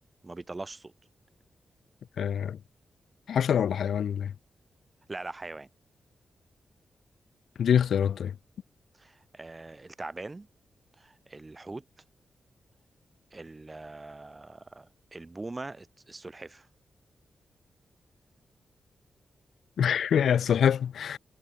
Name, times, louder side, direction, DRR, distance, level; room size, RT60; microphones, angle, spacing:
voice 1, 0.2-0.9 5.1-5.7 8.9-10.5 10.9-12.0 13.3-16.7, right 2 dB, 20° right, 0.8 m, -42 dB
voice 2, 2.2-2.6 3.3-4.3 7.6-8.3 19.8-21.2, left 8 dB, 85° left, 0.5 m, -25 dB
wide cardioid pair, 175°, 0 cm